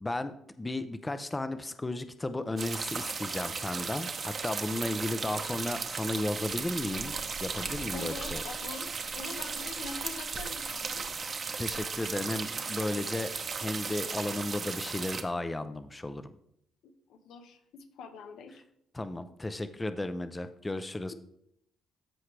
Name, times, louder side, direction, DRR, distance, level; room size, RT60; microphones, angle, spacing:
voice 1, 0.0-7.2 7.4-8.4 11.6-13.3 13.6-16.3 18.9-21.1, left 2 dB, 15° left, 11 dB, 0.5 m, -34 dB
sound 1, 2.6-15.2, right 5 dB, 45° right, 0.9 m, -36 dB
voice 2, 7.9-11.1 14.0-14.4 16.8-18.6, left 5 dB, 85° left, 6 dB, 1.0 m, -44 dB
14.0 x 4.7 x 3.3 m, 0.74 s
cardioid pair, 90°, 0 cm